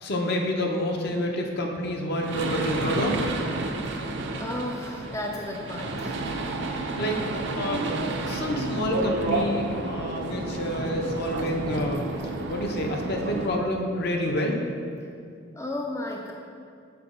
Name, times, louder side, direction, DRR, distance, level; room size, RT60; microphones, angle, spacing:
voice 1, 0.0-3.2 6.7-7.2 7.5-7.9 8.3-12.1 12.5-14.6, left 1 dB, 55° left, 2 dB, 0.7 m, -28 dB
sound 1, 2.1-13.5, right 2 dB, 65° right, 0.5 m, -30 dB
voice 2, 4.4-6.2 15.5-16.3, left 1 dB, 15° left, 0 dB, 0.3 m, -33 dB
6.0 x 4.6 x 4.9 m, 2.3 s
head